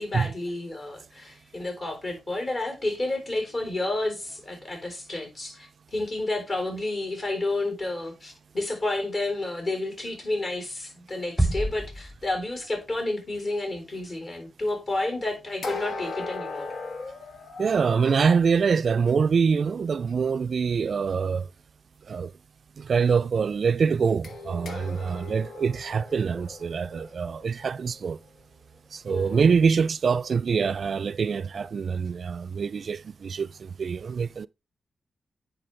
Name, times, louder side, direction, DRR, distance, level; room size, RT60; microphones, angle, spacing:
voice 1, 0.0-16.7 29.1-29.5, left 2 dB, 50° left, 3.9 m, -30 dB
Bass drum, 11.4-12.8, right 1 dB, ahead, 0.8 m, -28 dB
sound 1, 15.6-18.3 24.2-28.3, left 3 dB, 70° left, 1.1 m, -38 dB
voice 2, 17.6-21.5 22.1-22.3 22.8-28.2 28.9-34.5, right 5 dB, 60° right, 0.3 m, -25 dB
9.9 x 4.2 x 3.3 m
cardioid pair, 65°, 0 cm